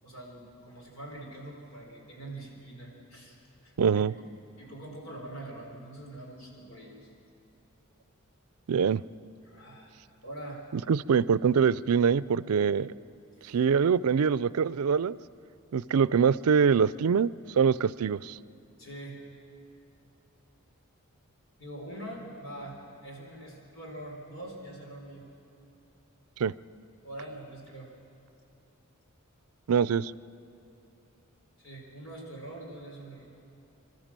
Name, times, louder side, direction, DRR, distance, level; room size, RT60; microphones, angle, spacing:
voice 1, 0.0-3.4 3.6-4.0 4.6-7.1 9.4-9.9 10.2-10.6 13.4-13.7 18.8-19.2 21.6-25.3 27.0-27.9 31.6-33.2, right 1 dB, 65° left, -1 dB, 4.6 m, -44 dB
voice 2, 3.8-4.1 8.7-9.0 10.7-12.9 13.5-15.2 15.7-18.4 26.4-26.5 29.7-30.1, right 6 dB, 90° right, 18 dB, 0.4 m, -24 dB
26.5 x 13.5 x 7.5 m, 2.9 s
head